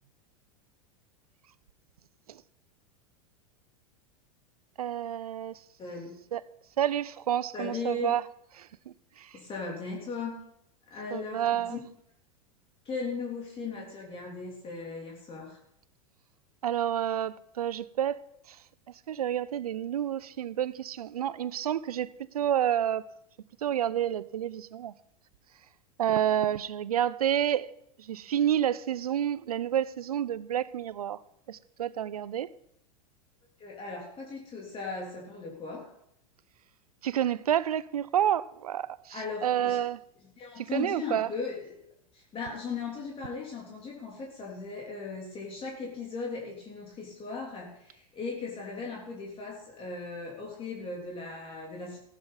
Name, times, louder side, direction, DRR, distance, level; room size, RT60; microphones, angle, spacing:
voice 1, 4.8-5.6 6.3-6.4 6.8-8.2 8.6-9.4 11.1-11.8 16.6-18.2 18.5-22.1 22.3-23.1 23.6-24.9 26.0-27.7 28.0-31.2 31.5-32.5 37.0-40.0 40.6-41.3, right 10 dB, 85° right, 0.6 m, -29 dB
voice 2, 5.8-6.1 7.5-8.2 9.3-10.4 10.9-11.8 12.8-15.6 33.6-35.9 39.1-39.8 40.4-41.8 42.1-52.0, left 4 dB, 30° left, 3.2 m, -37 dB
15.5 x 11.5 x 4.1 m
hypercardioid pair, 95°, 19 cm